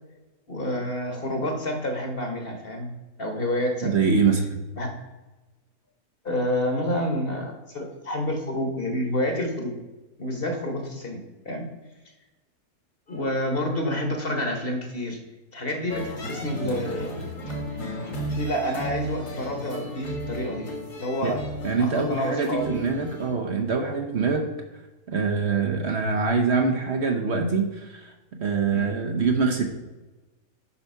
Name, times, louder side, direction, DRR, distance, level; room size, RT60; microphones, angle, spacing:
voice 1, 0.5-2.9 3.2-3.9 4.8-4.9 6.2-9.7 10.2-11.2 11.4-11.6 13.1-15.2 15.5-17.2 17.5-17.6 18.3-20.7 21.0-21.4 21.8-22.8 28.7-28.9, left 1 dB, 40° left, 4 dB, 1.4 m, -28 dB
voice 2, 3.8-4.4 21.2-21.3 21.6-24.5 25.1-28.1 28.4-29.6, right 5 dB, 55° right, 3 dB, 1.1 m, -24 dB
sound 1, 15.9-23.3, equal, 65° left, 2.2 m, -34 dB
7.1 x 5.8 x 5.6 m, 1.1 s
omnidirectional pair, 1.5 m